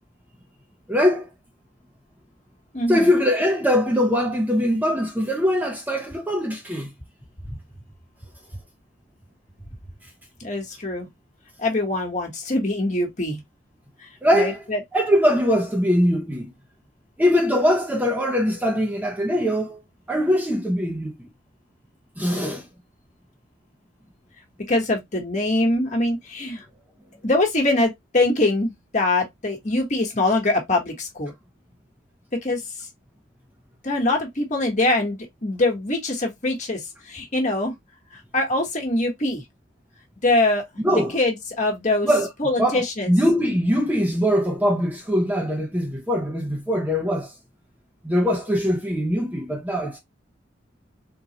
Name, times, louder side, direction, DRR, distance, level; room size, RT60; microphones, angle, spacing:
voice 1, 0.9-1.3 2.9-6.9 14.2-14.6 14.9-16.5 17.2-19.8 20.1-21.1 22.2-22.7 40.8-41.2 42.0-42.3 42.6-47.3 48.0-50.0, equal, 10° right, 0.6 m, -22 dB
voice 2, 2.7-3.1 10.4-11.1 11.6-13.4 14.0-14.8 24.7-26.6 27.2-31.3 32.4-32.6 33.8-37.7 38.3-39.4 40.2-40.6 40.9-42.1 42.4-43.1, left 2 dB, 40° left, 1.2 m, -23 dB
3.8 x 2.3 x 2.7 m
head